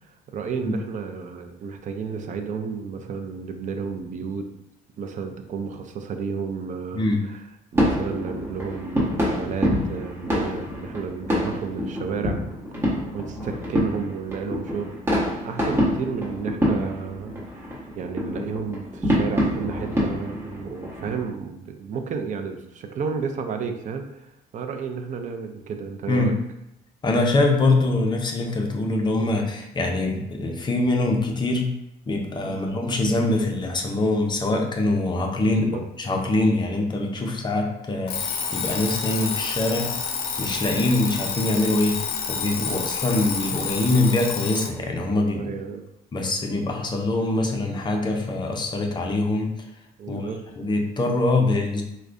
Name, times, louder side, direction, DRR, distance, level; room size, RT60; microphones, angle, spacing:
voice 1, 0.0-4.5 5.0-7.4 7.7-12.4 13.1-14.9 15.3-26.4 32.4-32.6 35.6-35.8 42.6-42.8 45.3-45.8 50.0-50.4, right 5 dB, 45° right, 5 dB, 0.5 m, -32 dB
sound 1, 7.7-21.3, equal, 15° right, 1.2 m, -26 dB
voice 2, 27.0-31.7 32.1-35.7 36.0-39.9 40.4-42.0 42.3-45.4 46.1-49.5 50.1-50.3 50.6-51.8, left 2 dB, 25° left, 2 dB, 0.6 m, -23 dB
Alarm, 38.1-44.8, left 6 dB, 75° left, 0.5 m, -29 dB
4.6 x 2.2 x 2.5 m, 0.83 s
cardioid pair, 110°, 17 cm